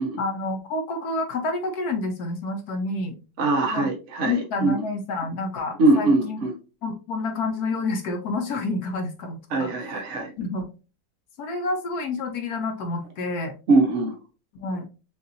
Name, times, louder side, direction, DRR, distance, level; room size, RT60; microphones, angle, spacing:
voice 1, 0.2-3.2 3.7-3.9 4.2-6.4 6.8-9.7 10.4-10.7 11.4-13.5 14.5-14.9, left 3 dB, 65° left, 6 dB, 1.1 m, -29 dB
voice 2, 3.4-4.7 5.8-6.5 9.5-10.3 13.7-14.1, right 2 dB, 50° right, 1 dB, 0.9 m, -22 dB
6.5 x 2.5 x 2.7 m, 0.33 s
omnidirectional pair, 2.1 m